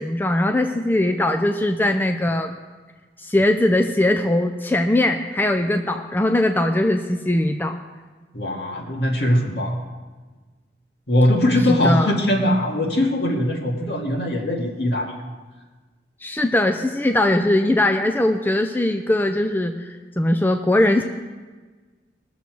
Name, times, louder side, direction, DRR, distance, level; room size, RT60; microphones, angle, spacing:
voice 1, 0.0-2.5 3.2-7.8 11.7-12.1 16.2-21.0, left 1 dB, 10° left, 4 dB, 0.4 m, -20 dB
voice 2, 8.3-9.8 11.1-15.1, left 1 dB, 65° left, 0 dB, 2.0 m, -21 dB
20.0 x 7.0 x 4.6 m, 1.4 s
head